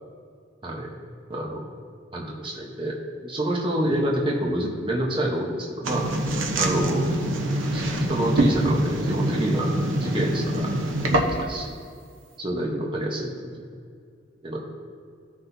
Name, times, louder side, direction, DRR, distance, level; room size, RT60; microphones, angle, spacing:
voice 1, 1.3-1.6 2.1-3.0 3.2-6.1 6.6-7.0 7.7-9.7 10.0-10.7 11.1-11.7 12.4-13.6 14.4-14.6, right 1 dB, 25° right, -1 dB, 1.0 m, -27 dB
sound 1, 5.8-11.6, right 1 dB, 80° right, 0.9 m, -25 dB
15.0 x 5.9 x 2.7 m, 2.2 s
head